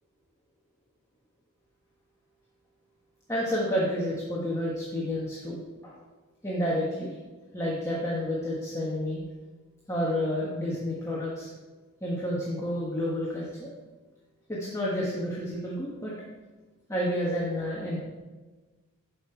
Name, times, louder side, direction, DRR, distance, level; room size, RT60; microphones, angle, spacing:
voice 1, 3.3-5.6 5.8-5.9 6.4-7.1 7.5-9.2 9.9-11.5 12.0-13.7 14.5-16.1 16.9-18.0, equal, 15° left, -5 dB, 1.4 m, -30 dB
12.0 x 5.4 x 4.6 m, 1.3 s
head